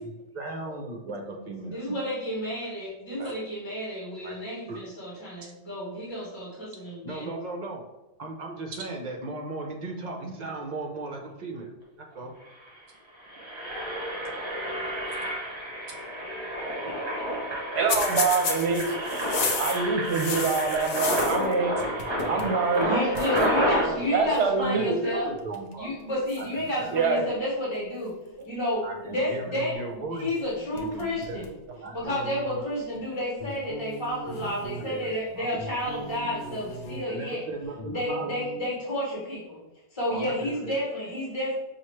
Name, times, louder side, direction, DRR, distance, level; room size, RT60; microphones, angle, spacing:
voice 1, 0.0-1.8 3.2-3.3 4.2-4.3 4.7-4.9 7.0-7.8 8.2-11.7 12.0-12.3 23.2-26.0 26.4-27.0 28.8-30.3 30.7-31.4 31.8-32.0 32.9-33.0 34.8-35.5 35.9-36.1 37.0-38.4 40.1-40.8, right 2 dB, 45° right, 3 dB, 0.7 m, -37 dB
voice 2, 1.6-7.3 22.8-25.3 25.8-28.1 28.4-31.5 31.9-37.4 37.9-39.6 39.9-41.6, equal, 25° left, -6 dB, 1.0 m, -31 dB
Engine, 12.1-12.2 12.5-12.7 13.1-23.9, equal, 25° right, 1.0 m, -30 dB
voice 3, 17.7-18.9 19.6-21.8 22.3-22.9 24.1-25.0 26.9-27.2 31.0-31.1, right 4 dB, 70° right, 3 dB, 0.8 m, -25 dB
sound 1, 17.9-21.5 21.8-22.6 22.8-22.9 23.1-23.5 24.3-24.6 25.4-25.7 26.3-27.3 30.3-30.4 30.8-31.6 32.0-32.1 33.0-33.1 34.3-35.2 36.4-37.0, left 5 dB, 90° left, 0.9 m, -34 dB
sound 2, 32.0-32.9 33.4-34.8 35.3-37.2 37.5-38.6, right 1 dB, 65° left, 0.8 m, -40 dB
5.6 x 2.3 x 3.1 m, 0.99 s
omnidirectional pair, 1.2 m